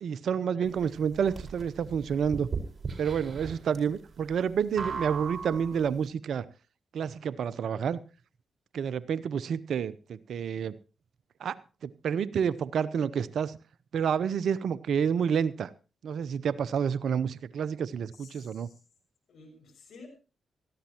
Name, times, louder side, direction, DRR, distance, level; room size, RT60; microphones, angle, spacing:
voice 1, 0.0-2.5 3.0-6.4 6.9-8.0 8.7-10.7 11.4-11.6 11.8-13.6 13.9-15.7 16.0-18.7, right 7 dB, 70° right, 18 dB, 0.6 m, -29 dB
sound 1, 0.6-5.9, right 5 dB, 40° right, 4.7 m, -38 dB
voice 2, 18.1-18.8 19.3-20.1, left 4 dB, 70° left, 3 dB, 5.9 m, -52 dB
18.0 x 14.0 x 2.9 m, 0.34 s
hypercardioid pair, 40°, 0 cm